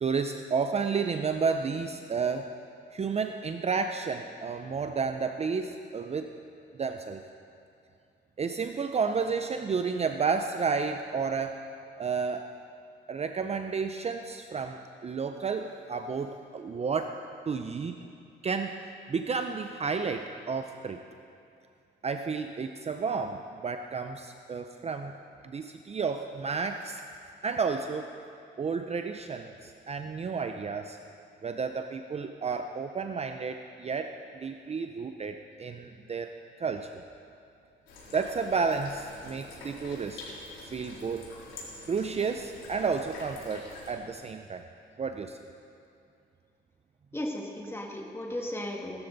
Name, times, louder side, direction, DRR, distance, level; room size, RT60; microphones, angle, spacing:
voice 1, 0.0-2.5 2.9-6.3 6.8-7.2 8.4-11.6 12.0-12.5 13.1-17.2 17.5-17.9 18.4-18.8 19.1-21.0 22.0-25.1 25.4-27.0 27.4-28.1 28.6-31.0 31.4-37.0 38.1-40.2 40.7-41.3 41.9-44.6 45.0-45.4, right 5 dB, 30° right, 7 dB, 0.6 m, -31 dB
sound 1, 37.9-43.9, left 2 dB, 80° left, 3.8 m, -45 dB
voice 2, 47.1-49.0, left 1 dB, 10° left, 0 dB, 2.1 m, -35 dB
18.0 x 13.0 x 4.0 m, 2.5 s
cardioid pair, 90°, 20 cm